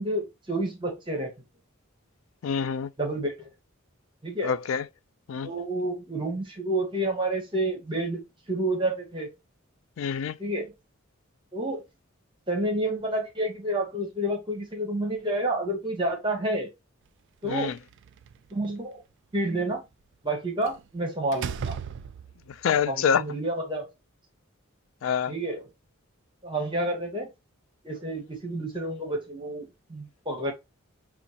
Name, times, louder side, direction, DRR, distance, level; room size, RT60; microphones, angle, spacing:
voice 1, 0.0-1.3 3.0-3.5 4.2-4.5 5.4-9.3 10.4-10.7 11.5-11.8 12.5-16.7 17.4-17.7 18.5-19.0 19.3-19.8 20.2-21.8 22.9-23.9 25.3-25.6 26.4-27.3 27.8-30.5, right 1 dB, 25° right, 1.0 m, -29 dB
voice 2, 2.4-2.9 4.4-4.8 5.3-5.5 10.0-10.4 17.4-17.7 22.6-23.2 25.0-25.3, left 7 dB, 70° left, 0.4 m, -26 dB
Slam, 17.5-18.5 20.6-20.9 21.3-22.5, right 7 dB, 60° right, 0.3 m, -36 dB
6.1 x 2.4 x 2.8 m
head